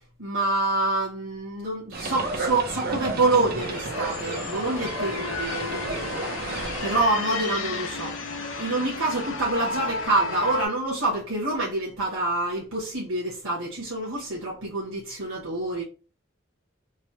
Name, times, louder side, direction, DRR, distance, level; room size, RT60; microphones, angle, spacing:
voice 1, 0.2-6.2 6.5-8.1 8.6-15.8, right 2 dB, 90° right, 1.1 m, -27 dB
sound 1, 1.9-7.0, right 3 dB, 50° right, 0.5 m, -32 dB
sound 2, 3.6-10.7, left 3 dB, 70° left, 0.6 m, -33 dB
3.1 x 2.1 x 2.9 m
head